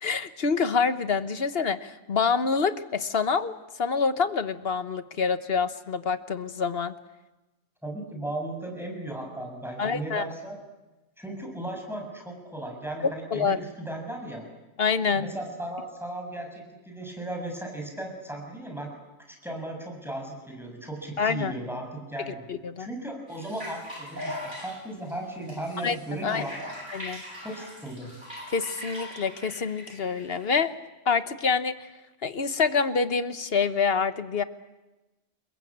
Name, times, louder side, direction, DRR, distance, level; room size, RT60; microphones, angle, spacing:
voice 1, 0.0-6.9 9.8-10.3 13.0-13.6 14.8-15.3 21.2-21.5 22.3-22.9 25.8-26.0 26.2-26.4 26.9-27.2 28.5-30.7 31.0-31.7 32.2-34.4, left 5 dB, 55° left, 11 dB, 1.4 m, -26 dB
voice 2, 7.8-10.6 11.2-14.5 15.0-18.9 19.3-22.5 22.8-26.6 27.4-28.1, right 1 dB, ahead, 2 dB, 7.1 m, -36 dB
sound 1, 23.3-30.7, left 1 dB, 40° right, 8.2 m, -41 dB
28.5 x 22.0 x 8.8 m, 1.1 s
omnidirectional pair, 1.3 m